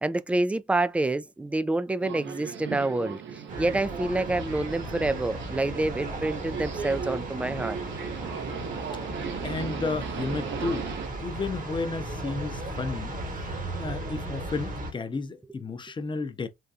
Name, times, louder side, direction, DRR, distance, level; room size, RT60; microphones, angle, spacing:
voice 1, 0.0-3.2 3.6-7.8, right 2 dB, 5° right, 0.3 m, -27 dB
Subway metro underground, 2.0-11.1, right 6 dB, 70° right, 0.8 m, -37 dB
sound 1, 3.5-14.9, right 1 dB, 45° right, 1.1 m, -36 dB
voice 2, 9.4-10.9 11.2-13.1 13.8-16.5, left 3 dB, 25° left, 0.6 m, -32 dB
3.6 x 2.2 x 2.7 m
cardioid pair, 90°, 20 cm